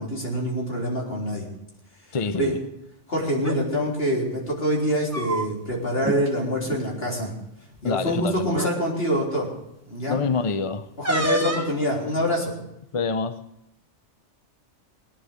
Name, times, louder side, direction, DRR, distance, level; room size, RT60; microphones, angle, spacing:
voice 1, 0.0-1.5 2.4-2.5 3.1-7.3 7.8-9.5 9.8-10.2 11.0-12.5, equal, 55° left, -2 dB, 4.1 m, -25 dB
voice 2, 2.1-2.6 7.8-8.6 10.1-10.9 12.9-13.4, left 4 dB, 35° left, 11 dB, 0.5 m, -26 dB
sound 1, 3.3-3.6 4.8-5.7 6.0-6.2 6.6-6.8 7.8-7.9 8.5-8.8 11.0-11.8, right 1 dB, 15° right, 1.0 m, -28 dB
19.0 x 10.0 x 6.6 m, 0.83 s
omnidirectional pair, 1.2 m